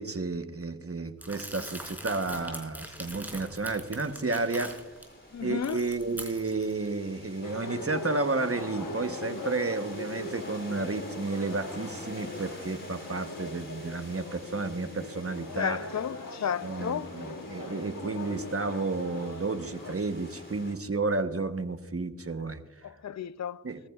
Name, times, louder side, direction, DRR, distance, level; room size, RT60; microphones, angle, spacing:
voice 1, 0.0-4.8 5.4-15.8 16.6-22.6 23.6-23.8, right 3 dB, 45° right, 1.0 m, -32 dB
Crumpling crinkling, 1.2-5.0 5.4-6.7, equal, 5° right, 4.5 m, -42 dB
sound 1, 3.4-20.8, left 1 dB, 35° left, 3.1 m, -49 dB
voice 2, 5.3-5.8 15.5-17.1 22.8-23.6, left 8 dB, 55° left, 0.5 m, -33 dB
sound 2, 7.4-20.0, left 3 dB, 70° left, 1.2 m, -40 dB
20.5 x 14.0 x 2.4 m
wide cardioid pair, 45°, 33 cm